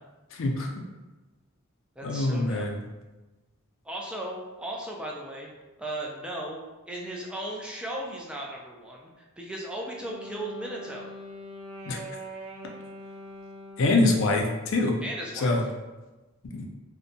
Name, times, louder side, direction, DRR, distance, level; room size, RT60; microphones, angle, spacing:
voice 1, 0.3-0.7 2.0-2.8 11.9-12.0 13.8-14.9 15.4-15.6 16.5-16.6, left 2 dB, 65° left, 2 dB, 0.4 m, -24 dB
voice 2, 2.0-2.7 3.8-5.5 5.8-6.6 6.9-11.1 15.0-15.7, right 1 dB, 5° right, -2 dB, 0.3 m, -36 dB
Wind instrument woodwind instrument, 9.8-14.3, equal, 80° right, 0.4 m, -43 dB
2.6 x 2.1 x 2.6 m, 1.1 s
head